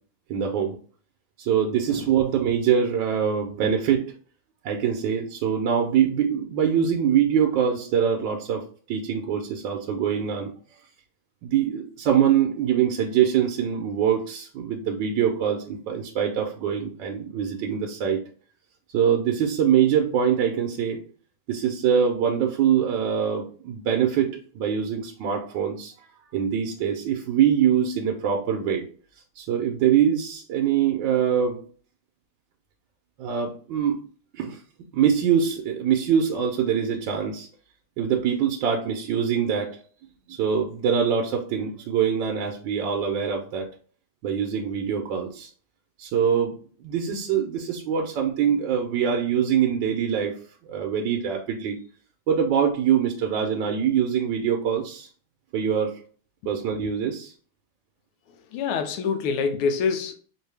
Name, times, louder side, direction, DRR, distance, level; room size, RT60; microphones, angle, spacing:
voice 1, 0.3-0.7 1.4-4.1 4.6-10.5 11.4-18.2 18.9-21.0 21.5-25.9 26.3-28.9 29.4-31.6 33.2-34.0 34.3-34.6 34.9-37.5 38.0-39.8 40.3-43.7 44.2-45.5 46.0-51.8 52.3-55.1 55.5-56.0 56.4-57.3, right 8 dB, 70° right, 2 dB, 1.2 m, -24 dB
voice 2, 58.5-60.1, left 5 dB, 90° left, 6 dB, 1.5 m, -25 dB
4.5 x 2.7 x 3.2 m, 0.42 s
omnidirectional pair, 2.3 m